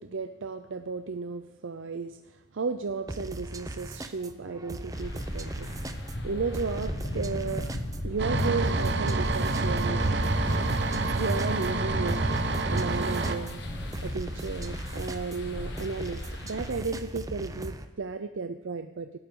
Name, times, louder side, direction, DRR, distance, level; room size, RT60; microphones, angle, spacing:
voice 1, 0.0-5.7 6.2-7.6 8.0-10.2 11.1-12.2 12.7-13.6 14.0-19.2, right 4 dB, 75° right, 8 dB, 0.5 m, -34 dB
sound 1, 3.1-17.8, right 1 dB, 15° right, 0.6 m, -39 dB
sound 2, 4.9-16.7, left 1 dB, 60° left, 1.7 m, -37 dB
sound 3, 8.2-13.4, right 2 dB, 55° right, 0.9 m, -27 dB
24.5 x 11.5 x 3.8 m, 1.1 s
head